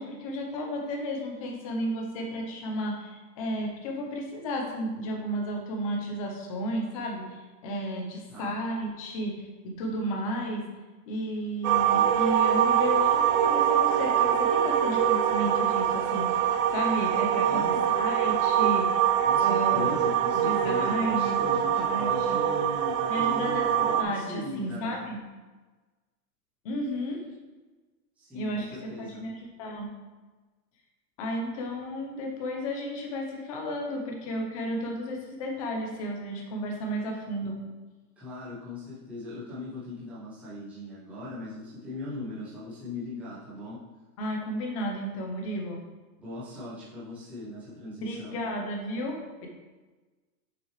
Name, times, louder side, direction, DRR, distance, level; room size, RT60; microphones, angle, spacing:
voice 1, 0.0-10.6 11.1-18.9 19.4-19.9 20.4-21.4 21.7-22.4 23.1-23.7 24.0-25.2 26.6-27.2 28.3-28.7 29.0-29.9 31.2-37.5 44.2-45.8 48.0-49.5, equal, 20° left, 1 dB, 0.8 m, -33 dB
sound 1, 11.6-24.0, right 9 dB, 50° right, 0.6 m, -24 dB
voice 2, 17.5-17.9 19.2-25.0 28.2-29.2 38.2-43.8 46.2-48.4, left 2 dB, 5° right, -12 dB, 1.0 m, -39 dB
6.6 x 6.1 x 3.2 m, 1.3 s
supercardioid pair, 175°, 50 cm